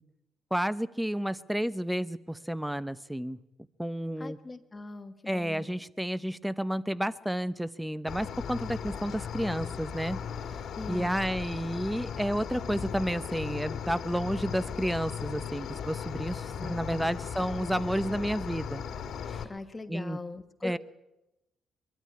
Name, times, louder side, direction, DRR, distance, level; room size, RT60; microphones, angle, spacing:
voice 1, 0.5-3.4 3.8-4.4 5.3-10.2 10.9-18.8 19.3-19.5 19.9-20.2 20.6-20.8, equal, 5° right, 17 dB, 0.8 m, -31 dB
voice 2, 4.2-5.7 10.8-11.2 16.6-17.1 19.4-20.8, left 3 dB, 25° left, 8 dB, 1.2 m, -41 dB
Cricket, 8.1-19.4, left 7 dB, 65° left, 1.8 m, -37 dB
23.0 x 12.5 x 9.8 m, 0.93 s
cardioid pair, 90°, 0 cm